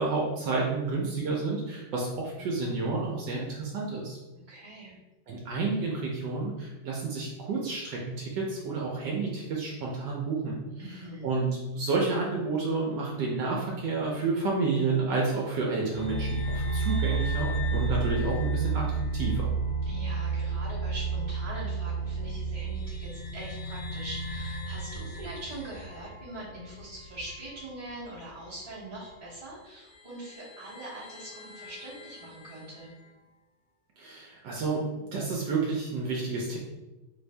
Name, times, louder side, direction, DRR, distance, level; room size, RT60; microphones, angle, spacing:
voice 1, 0.0-4.2 5.3-10.6 10.9-18.9 19.1-19.5 34.0-36.6, right 3 dB, 70° right, -2 dB, 1.2 m, -30 dB
voice 2, 4.5-5.0 10.8-11.3 19.8-32.9, right 1 dB, 35° right, -11 dB, 0.6 m, -42 dB
sound 1, 15.9-27.9 28.1-28.2 29.3-29.4 29.9-32.9, right 4 dB, 65° left, 1.4 m, -32 dB
3.2 x 2.6 x 3.2 m, 1.1 s
omnidirectional pair, 2.1 m